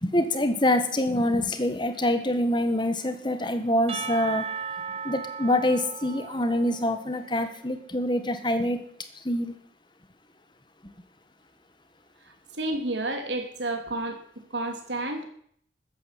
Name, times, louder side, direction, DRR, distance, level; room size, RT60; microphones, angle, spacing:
voice 1, 0.0-4.5 5.0-8.8 9.1-9.6, left 1 dB, 25° left, 9 dB, 1.6 m, -25 dB
Percussion / Church bell, 3.9-7.5, right 6 dB, 35° right, 1.1 m, -36 dB
voice 2, 12.6-14.2 14.5-15.3, right 2 dB, 85° right, 5 dB, 3.2 m, -30 dB
13.5 x 10.5 x 8.5 m, 0.62 s
head